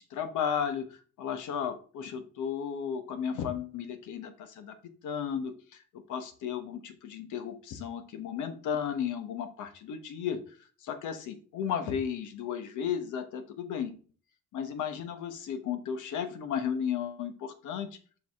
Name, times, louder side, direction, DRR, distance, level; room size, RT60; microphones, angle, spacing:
voice 1, 0.1-4.7 5.0-5.8 6.1-10.4 10.8-13.9 14.5-17.9, left 8 dB, 85° left, 8 dB, 1.2 m, -34 dB
7.0 x 4.8 x 3.5 m, 0.40 s
cardioid pair, 90°, 30 cm